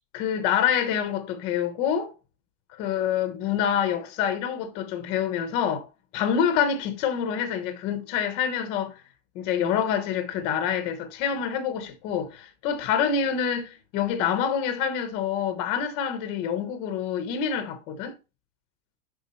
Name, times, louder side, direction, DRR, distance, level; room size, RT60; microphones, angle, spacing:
voice 1, 0.1-2.1 2.8-5.9 6.1-9.0 9.3-18.1, left 8 dB, 15° left, 0.4 m, -26 dB
10.0 x 3.7 x 4.1 m
supercardioid pair, 175°, 41 cm